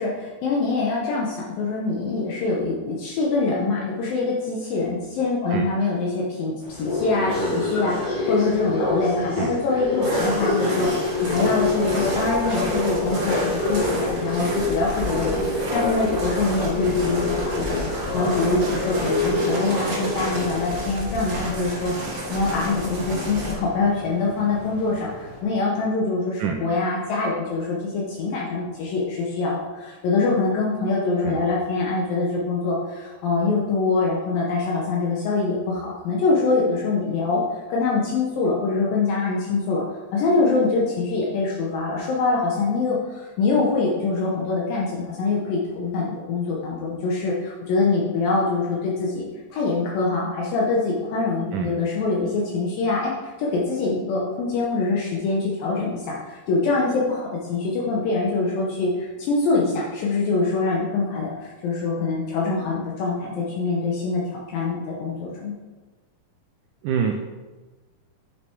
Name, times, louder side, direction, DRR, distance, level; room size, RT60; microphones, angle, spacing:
voice 1, 0.0-21.9 22.3-37.4 37.7-39.8 40.1-65.5, left 3 dB, 70° left, -4 dB, 2.7 m, -24 dB
sound 1, 6.6-25.4, left 2 dB, 50° left, 3.5 m, -27 dB
sound 2, 10.0-23.5, right 1 dB, 55° right, 1.0 m, -31 dB
voice 2, 66.8-67.1, right 8 dB, 85° right, 4 dB, 1.8 m, -25 dB
8.6 x 6.7 x 4.6 m, 1.3 s
omnidirectional pair, 4.4 m